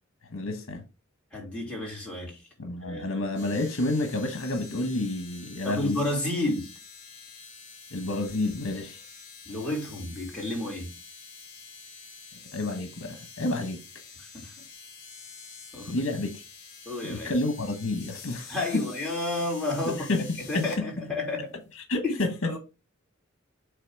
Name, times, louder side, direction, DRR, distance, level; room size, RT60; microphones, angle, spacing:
voice 1, 0.3-0.8 2.6-6.0 7.9-9.0 12.5-13.8 15.9-16.4 17.0-18.5 19.9-20.8 21.9-22.5, left 2 dB, 75° left, 1.2 m, -29 dB
voice 2, 1.3-2.5 2.8-3.2 5.6-6.7 9.4-10.9 14.2-14.5 15.7-16.0 16.8-17.3 18.5-21.5 22.0-22.1 22.4-22.6, left 2 dB, 5° left, 3.0 m, -31 dB
sound 1, 3.3-20.8 21.7-21.8, left 5 dB, 40° left, 3.3 m, -47 dB
7.6 x 3.4 x 4.7 m
head